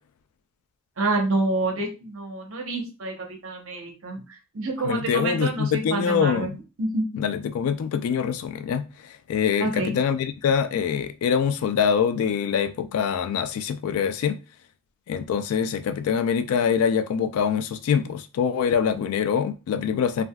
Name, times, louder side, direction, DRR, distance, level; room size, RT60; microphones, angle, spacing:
voice 1, 1.0-4.2 4.5-6.5 6.8-7.0 9.6-9.9, right 2 dB, 65° right, 0.8 m, -27 dB
voice 2, 4.8-6.6 7.1-14.4 15.1-20.2, left 7 dB, 80° left, 0.3 m, -24 dB
3.3 x 2.5 x 2.2 m
head